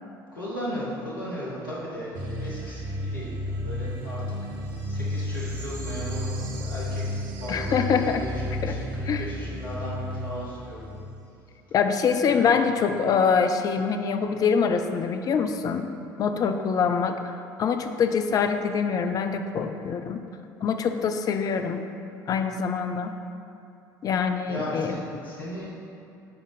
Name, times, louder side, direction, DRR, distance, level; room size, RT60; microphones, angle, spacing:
voice 1, 0.3-4.4 4.9-10.9 12.3-12.7 24.5-25.8, equal, 80° left, -7 dB, 1.0 m, -36 dB
sound 1, 2.1-11.3, left 1 dB, 55° right, 0.8 m, -32 dB
voice 2, 7.5-8.3 8.6-8.8 9.0-9.3 11.7-15.9 16.2-20.2 20.6-21.8 22.3-23.1 24.0-25.0, left 6 dB, 35° left, 7 dB, 0.4 m, -25 dB
5.8 x 3.6 x 5.1 m, 2.6 s
figure-of-eight pair, 55°, 11 cm